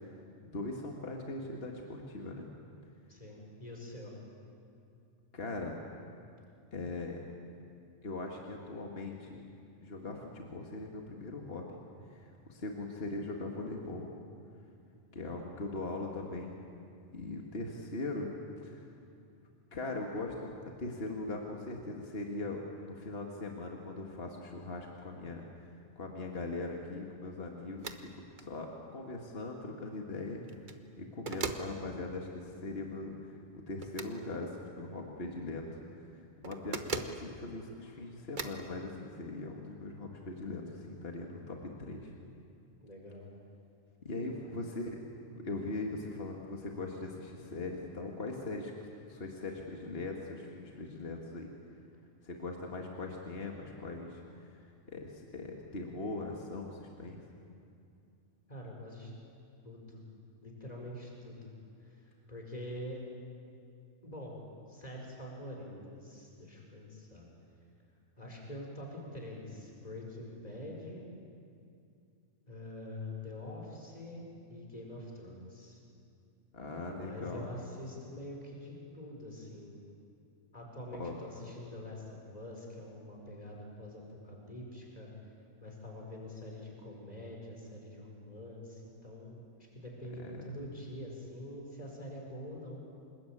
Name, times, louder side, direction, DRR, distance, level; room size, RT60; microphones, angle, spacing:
voice 1, 0.4-2.5 5.3-5.7 6.7-7.2 8.0-9.4 9.8-11.8 12.1-14.1 15.1-16.5 17.1-18.3 18.6-18.9 19.7-30.4 31.0-35.8 36.1-42.1 44.0-45.0 45.3-48.7 49.1-51.5 52.2-57.2 76.5-77.4 80.9-81.2 90.2-90.5, left 2 dB, 50° left, 1 dB, 2.2 m, -40 dB
voice 2, 3.1-4.1 36.5-36.8 42.8-43.3 44.4-44.5 58.5-59.1 59.6-60.0 60.4-61.5 61.8-63.0 64.0-64.4 64.7-67.3 68.2-71.1 72.5-75.8 76.7-79.8 80.5-85.1 85.6-89.5 89.7-92.8, left 1 dB, 30° left, -1 dB, 5.2 m, -45 dB
sound 1, 27.8-28.0 28.4-28.5 30.4-30.8 31.3-31.7 33.8-34.1 36.4-37.2 38.4-38.6, right 4 dB, 40° right, 1.3 m, -38 dB
27.0 x 20.5 x 8.9 m, 2.5 s
omnidirectional pair, 1.3 m